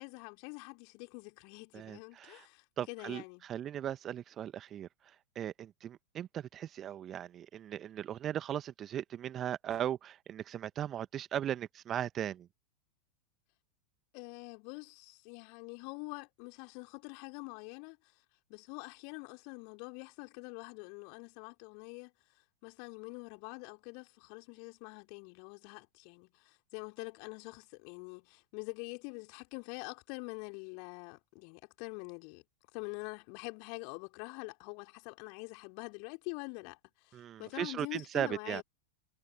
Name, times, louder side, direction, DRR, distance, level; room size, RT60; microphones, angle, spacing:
voice 1, 0.0-3.4 14.1-18.0 18.5-22.1 22.6-32.4 32.7-38.6, left 40 dB or more, 45° left, 4.2 m, -45 dB
voice 2, 1.7-2.4 2.8-12.5 37.1-38.6, right 10 dB, 30° right, 1.4 m, -38 dB
figure-of-eight pair, 90°, 0 cm